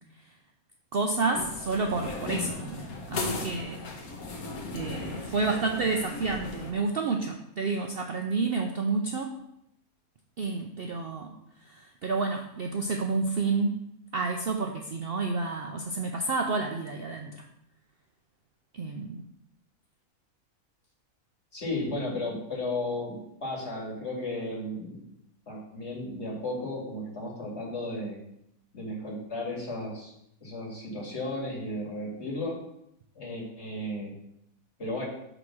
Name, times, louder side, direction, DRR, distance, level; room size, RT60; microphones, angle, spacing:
voice 1, 0.9-3.8 4.7-9.3 10.4-11.3 11.7-13.7 14.1-17.4 18.7-19.2, right 3 dB, 60° right, 3 dB, 0.6 m, -30 dB
sound 1, 1.3-6.7, left 3 dB, 80° left, 1.6 m, -36 dB
voice 2, 21.5-25.0 25.5-28.2 28.7-30.1 30.4-32.6 33.2-34.1 34.8-35.0, left 1 dB, 50° left, -3 dB, 2.5 m, -34 dB
6.8 x 3.7 x 6.1 m, 0.78 s
omnidirectional pair, 1.5 m